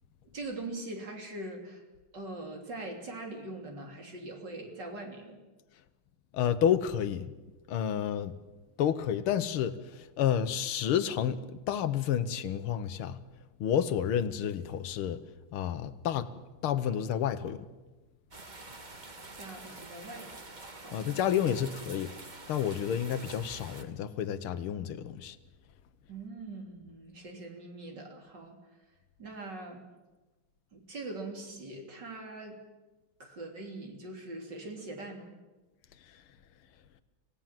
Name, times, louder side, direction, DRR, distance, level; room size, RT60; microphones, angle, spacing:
voice 1, 0.3-1.8 2.1-5.4 19.4-20.4 20.7-21.2 26.1-28.6 29.2-29.8 30.7-32.6 33.2-35.3, right 2 dB, 55° right, 3.9 m, -42 dB
voice 2, 6.3-7.3 7.7-8.3 8.8-11.4 11.7-13.2 13.6-15.2 15.5-16.3 16.6-17.7 20.9-22.1 22.5-25.4, left 9 dB, 85° left, 1.9 m, -30 dB
sound 1, 18.3-23.8, right 2 dB, 25° right, 1.5 m, -47 dB
26.0 x 17.5 x 7.5 m
omnidirectional pair, 2.3 m